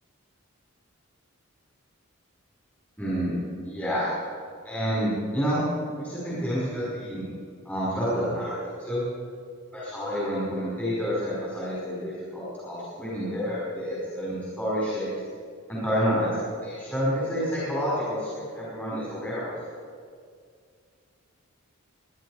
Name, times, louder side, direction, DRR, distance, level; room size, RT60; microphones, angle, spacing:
voice 1, 3.0-4.1 4.6-5.7 5.9-7.2 7.6-9.0 9.7-15.1 15.7-16.3 16.6-19.5, equal, 10° left, -9 dB, 5.0 m, -29 dB
21.0 x 11.5 x 4.9 m, 2.1 s
head